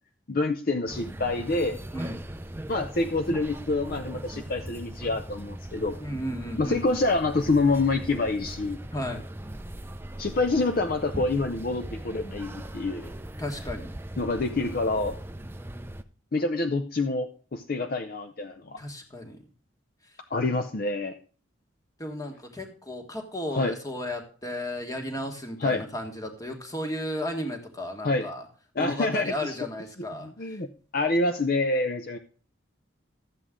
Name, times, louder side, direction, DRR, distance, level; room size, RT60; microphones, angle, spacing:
voice 1, 0.3-1.8 2.7-6.0 6.6-8.8 10.2-13.1 14.2-15.2 16.3-18.8 20.3-21.2 23.5-23.7 25.6-25.8 28.0-28.3 28.8-29.6 30.2-30.7 30.9-32.2, left 2 dB, 45° left, 7 dB, 0.6 m, -27 dB
sound 1, 0.9-16.0, right 1 dB, 10° right, 0.5 m, -39 dB
voice 2, 6.0-7.0 8.9-9.2 13.4-13.9 18.8-19.4 22.0-28.4 28.8-30.6, left 1 dB, 15° left, 4 dB, 1.5 m, -34 dB
12.5 x 8.2 x 3.7 m, 0.40 s
head